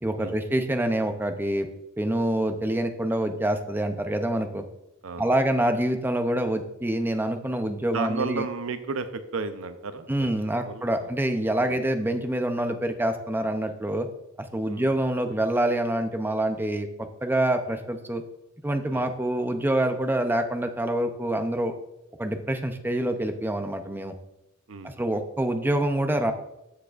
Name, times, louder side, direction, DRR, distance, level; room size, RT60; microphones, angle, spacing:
voice 1, 0.0-1.7 2.0-4.6 5.2-8.4 10.1-14.1 14.5-16.9 17.2-18.2 18.6-21.7 22.2-24.1 24.8-26.3, right 1 dB, 10° right, 7 dB, 0.5 m, -26 dB
voice 2, 7.9-11.1 11.7-11.8 14.7-15.0 18.9-19.1 24.7-25.0, right 4 dB, 80° right, 10 dB, 0.6 m, -34 dB
13.5 x 4.7 x 2.4 m, 0.89 s
head